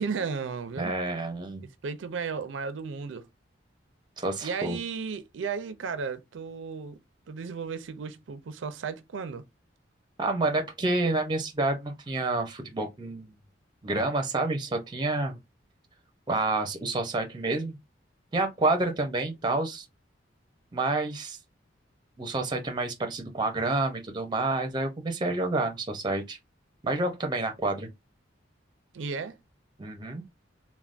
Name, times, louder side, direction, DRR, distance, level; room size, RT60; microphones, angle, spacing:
voice 1, 0.0-0.9 1.8-3.3 4.4-7.0 7.3-9.4 28.9-29.4, right 5 dB, 90° right, 0.4 m, -34 dB
voice 2, 0.8-1.6 4.2-4.8 10.2-13.4 13.8-15.4 16.3-17.8 18.3-19.8 20.7-21.4 22.2-26.4 26.8-27.9 29.8-30.2, right 2 dB, 25° right, 0.5 m, -28 dB
3.3 x 2.1 x 2.4 m
head